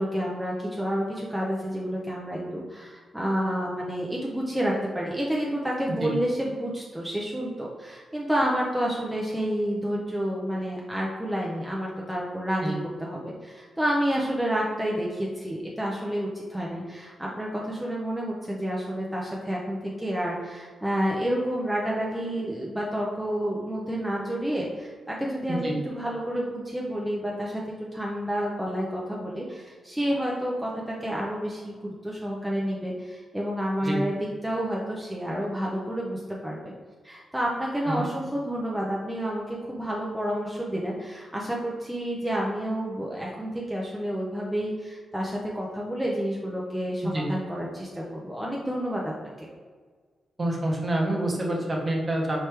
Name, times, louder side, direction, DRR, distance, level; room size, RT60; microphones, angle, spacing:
voice 1, 0.0-12.7 13.0-27.6 27.9-34.2 34.4-36.7 37.0-49.5, equal, 5° right, -4 dB, 0.5 m, -29 dB
voice 2, 50.4-52.4, right 1 dB, 30° right, -1 dB, 0.9 m, -27 dB
4.4 x 3.0 x 3.3 m, 1.5 s
cardioid pair, 100°, 0 cm